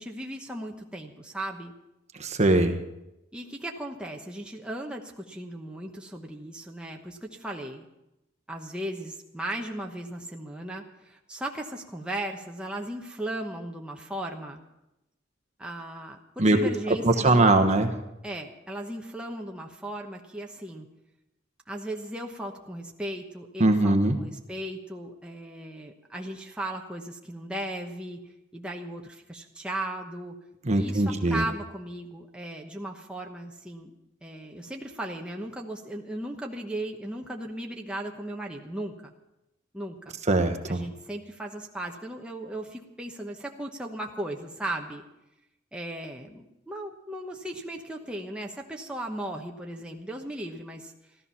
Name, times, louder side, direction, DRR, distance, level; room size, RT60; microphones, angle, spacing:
voice 1, 0.0-1.7 3.3-7.9 8.5-14.6 15.6-17.6 18.2-20.9 21.7-30.4 30.7-33.9 34.2-39.1 39.7-40.2 40.7-45.0 45.7-50.9, right 1 dB, 5° right, 0 dB, 1.1 m, -37 dB
voice 2, 2.2-2.8 16.4-16.6 17.0-17.9 23.6-24.2 30.7-31.4 40.3-40.8, right 2 dB, 35° right, 6 dB, 1.1 m, -21 dB
14.0 x 14.0 x 5.8 m, 0.91 s
head